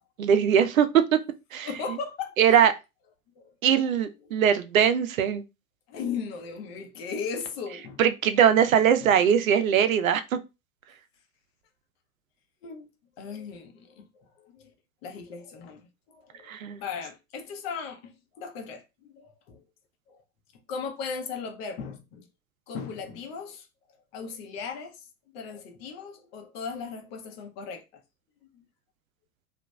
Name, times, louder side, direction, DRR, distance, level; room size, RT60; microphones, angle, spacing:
voice 1, 0.2-1.2 1.5-2.0 2.4-2.7 3.6-5.4 8.0-10.2 16.5-16.8, right 8 dB, 70° right, 0.5 m, -21 dB
voice 2, 1.6-2.4 3.4-3.5 4.3-4.4 5.9-8.0 9.0-9.2 12.6-12.9 13.2-14.7 15.0-16.5 16.8-19.6 20.1-20.2 20.7-22.3 22.7-23.7 24.1-25.1 25.3-28.0 28.5-28.6, left 5 dB, 45° left, 0.8 m, -37 dB
2.8 x 2.3 x 2.2 m
figure-of-eight pair, 90°, 42 cm